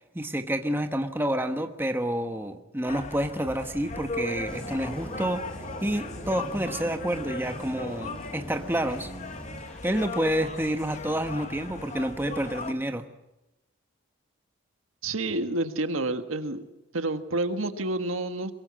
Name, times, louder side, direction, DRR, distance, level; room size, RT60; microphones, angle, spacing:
voice 1, 0.0-9.1 9.8-13.1, right 1 dB, 10° right, 6 dB, 1.2 m, -29 dB
sound 1, 2.9-12.7, left 2 dB, 35° left, 1.5 m, -38 dB
sound 2, 4.4-10.0, equal, 5° left, 3.2 m, -42 dB
voice 2, 15.0-16.6 16.9-18.5, right 2 dB, 90° right, 8 dB, 1.7 m, -29 dB
22.5 x 22.0 x 7.6 m, 0.98 s
head